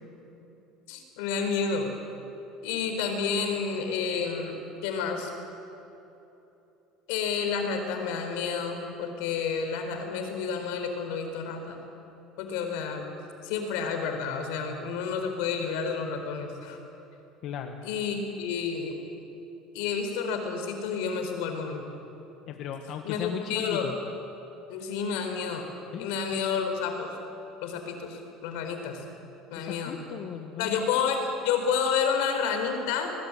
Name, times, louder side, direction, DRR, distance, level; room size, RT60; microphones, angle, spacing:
voice 1, 0.9-1.9 2.6-4.6 4.8-5.3 7.1-11.8 12.4-13.1 13.4-16.8 17.8-18.9 19.7-21.8 23.0-23.9 24.7-25.7 26.0-27.1 27.6-29.0 29.5-30.0 30.6-33.1, left 6 dB, 80° left, 5 dB, 4.3 m, -30 dB
voice 2, 17.4-17.7 22.5-23.9 25.9-26.1 29.5-30.7, left 8 dB, 55° left, 5 dB, 1.5 m, -36 dB
22.0 x 19.5 x 9.1 m, 3.0 s
cardioid pair, 125°, 0 cm